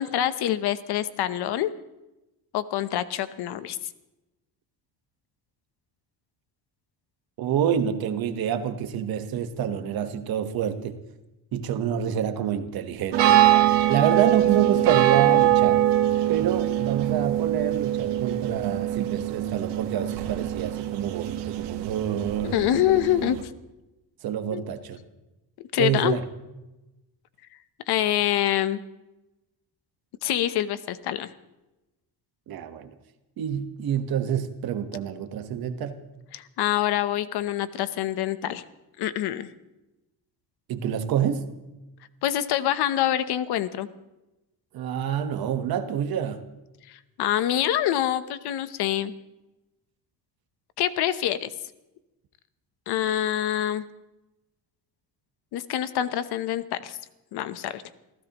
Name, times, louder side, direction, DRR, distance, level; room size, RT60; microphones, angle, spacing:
voice 1, 0.0-1.7 2.5-3.8 22.4-23.4 24.5-24.6 25.6-26.2 27.9-28.8 30.2-31.3 36.3-38.6 39.0-39.5 42.2-43.9 46.9-49.1 50.8-51.5 52.9-53.8 55.5-57.0 57.3-57.8, left 12 dB, 70° left, 13 dB, 1.0 m, -26 dB
voice 2, 7.4-11.0 11.5-13.5 13.9-15.8 16.3-22.6 24.2-25.0 25.8-26.2 32.5-32.9 33.4-36.0 40.7-41.5 44.7-46.4, right 9 dB, 60° right, 8 dB, 1.4 m, -27 dB
sound 1, 13.1-23.4, right 13 dB, 85° right, 1.6 m, -23 dB
27.5 x 15.5 x 3.0 m, 0.98 s
cardioid pair, 165°, 40 cm